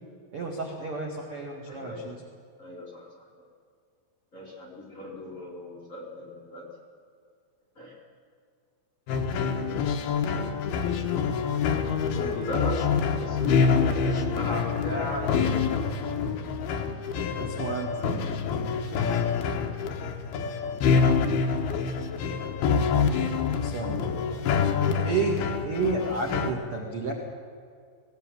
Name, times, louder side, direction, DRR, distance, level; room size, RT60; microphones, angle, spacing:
voice 1, 0.3-2.2 17.4-18.3 23.6-24.0 25.0-27.1, right 4 dB, 65° right, 0 dB, 1.4 m, -31 dB
voice 2, 1.6-2.1 2.6-3.1 3.4-3.5 4.3-6.7 7.7-8.0 9.5-10.4 12.1-12.9 13.2-15.8 18.8-19.2 24.0-24.2, left 1 dB, 20° left, -4 dB, 2.7 m, -37 dB
sound 1, 9.1-26.5, left 5 dB, 70° left, 2.5 m, -26 dB
20.5 x 17.0 x 9.1 m, 2.2 s
omnidirectional pair, 6.0 m